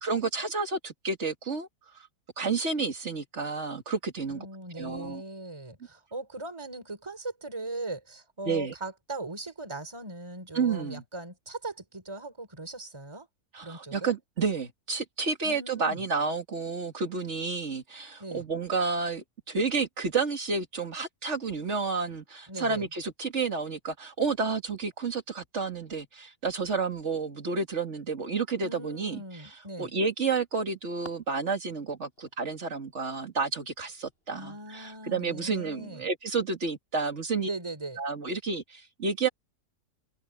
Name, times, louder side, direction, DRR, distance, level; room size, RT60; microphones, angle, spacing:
voice 1, 0.0-1.7 2.4-4.5 4.8-5.2 8.5-8.7 10.5-11.0 13.5-29.2 29.8-37.5 38.0-39.3, right 4 dB, 45° right, 2.4 m, -30 dB
voice 2, 4.3-13.3 13.6-14.1 15.4-16.0 18.2-18.4 22.5-22.9 28.6-29.9 34.3-36.1 37.5-38.0, right 2 dB, 15° right, 3.3 m, -39 dB
sound 1, 30.1-35.2, left 1 dB, 35° left, 8.4 m, -56 dB
open air
omnidirectional pair, 1.7 m